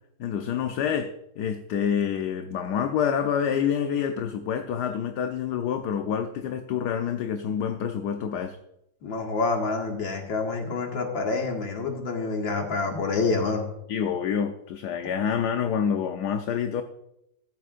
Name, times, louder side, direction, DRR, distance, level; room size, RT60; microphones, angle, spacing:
voice 1, 0.2-8.6 13.9-16.8, left 8 dB, 65° left, 6 dB, 1.3 m, -27 dB
voice 2, 9.0-13.7, left 3 dB, 85° left, 1 dB, 2.7 m, -27 dB
15.0 x 12.0 x 2.5 m, 0.83 s
omnidirectional pair, 2.0 m